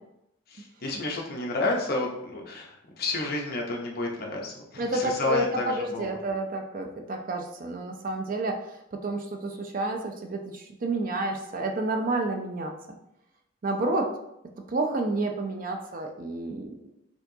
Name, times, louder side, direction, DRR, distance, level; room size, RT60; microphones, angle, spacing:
voice 1, 0.5-6.2, left 2 dB, 50° left, 0 dB, 0.7 m, -30 dB
voice 2, 4.8-12.7 13.6-14.1 14.7-16.9, right 2 dB, 45° right, 4 dB, 0.4 m, -30 dB
4.4 x 2.8 x 2.7 m, 0.81 s
head